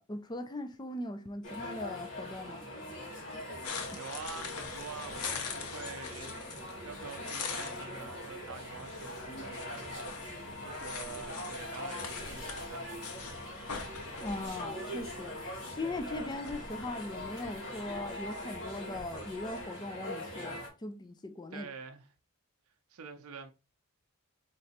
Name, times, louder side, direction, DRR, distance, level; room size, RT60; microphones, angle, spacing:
voice 1, 0.0-2.7 9.3-9.4 14.2-21.7, left 2 dB, 20° left, 0.4 m, -40 dB
sound 1, 1.4-20.7, left 1 dB, 60° left, 2.1 m, -42 dB
sound 2, 3.6-19.6, left 5 dB, 85° left, 0.9 m, -44 dB
voice 2, 3.9-6.4 6.8-10.0 10.6-13.0 21.5-22.1 22.9-23.5, right 5 dB, 70° right, 0.5 m, -46 dB
3.8 x 3.3 x 4.1 m
head